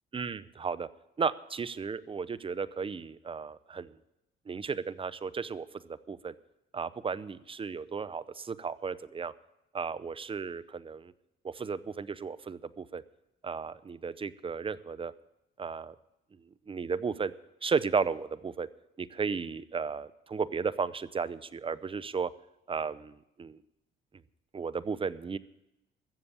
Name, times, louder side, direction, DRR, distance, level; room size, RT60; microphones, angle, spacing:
voice 1, 0.1-0.9 1.2-4.0 4.5-6.3 6.7-9.3 9.7-11.1 11.4-13.0 13.4-15.1 15.6-16.0 16.7-17.3 17.6-18.7 19.0-22.3 22.7-23.6 24.5-25.4, right 5 dB, 25° right, 16 dB, 0.6 m, -34 dB
15.0 x 7.2 x 8.4 m, 0.88 s
cardioid pair, 90°, 20 cm